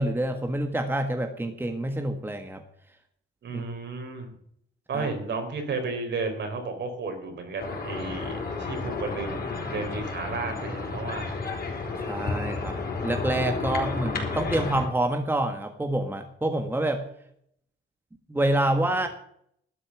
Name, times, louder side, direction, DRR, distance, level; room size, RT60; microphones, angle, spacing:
voice 1, 0.0-2.6 3.5-3.6 4.9-5.1 12.1-17.0 18.3-19.1, right 1 dB, 10° right, 5 dB, 1.5 m, -27 dB
voice 2, 3.4-4.3 4.9-9.4 9.7-11.4 13.8-13.9, right 3 dB, 65° right, 5 dB, 4.0 m, -33 dB
sound 1, 7.6-14.9, left 3 dB, 50° left, 4.8 m, -32 dB
12.5 x 8.6 x 7.2 m, 0.69 s
cardioid pair, 90°, 20 cm